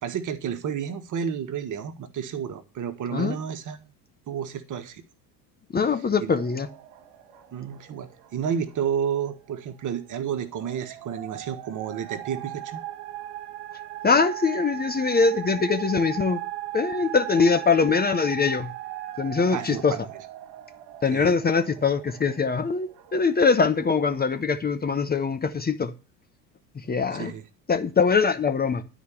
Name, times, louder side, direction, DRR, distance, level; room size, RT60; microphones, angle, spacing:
voice 1, 0.0-3.8 4.3-5.0 5.8-5.9 6.2-6.3 7.5-12.8 19.5-20.1 21.1-21.3 27.1-27.4, right 8 dB, 35° right, 1.7 m, -31 dB
voice 2, 5.7-6.7 14.0-16.4 16.7-18.7 19.2-19.9 21.0-25.9 26.8-27.3 27.7-28.8, left 5 dB, 20° left, 1.1 m, -22 dB
sound 1, 6.3-24.4, right 15 dB, 55° right, 2.0 m, -39 dB
11.5 x 5.1 x 8.6 m
figure-of-eight pair, 70°, 50 cm